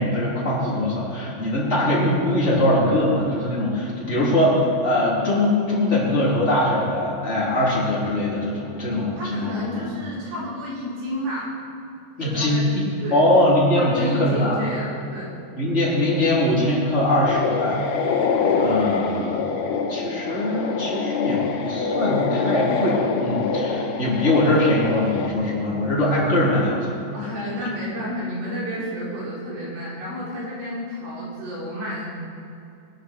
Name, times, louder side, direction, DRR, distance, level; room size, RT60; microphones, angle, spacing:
voice 1, 0.0-9.7 12.2-14.6 15.6-17.8 18.1-18.2 18.6-19.4 19.9-27.0, left 1 dB, 15° left, -8 dB, 3.7 m, -22 dB
voice 2, 9.2-11.5 12.2-12.7 13.0-13.2 13.8-15.3 18.3-18.7 27.1-32.1, equal, 70° right, -7 dB, 6.5 m, -31 dB
sound 1, 17.3-25.3, left 5 dB, 85° left, 3.3 m, -25 dB
21.5 x 11.0 x 4.7 m, 2.6 s
omnidirectional pair, 5.2 m